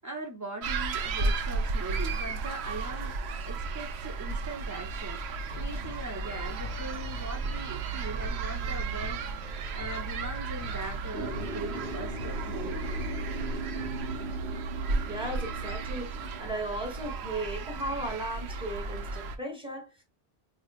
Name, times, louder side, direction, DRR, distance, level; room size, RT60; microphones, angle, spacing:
voice 1, 0.0-5.2 5.5-9.3 9.7-12.9, right 2 dB, 30° right, 0.3 m, -40 dB
sound 1, 0.6-19.4, right 3 dB, 80° right, 0.9 m, -34 dB
sound 2, 5.5-14.4, left 4 dB, 55° left, 0.7 m, -48 dB
sound 3, 11.1-16.4, right 2 dB, 60° right, 1.4 m, -39 dB
voice 2, 15.0-16.1 16.4-20.0, right 1 dB, 5° right, 1.2 m, -36 dB
5.0 x 2.4 x 2.3 m
omnidirectional pair, 1.1 m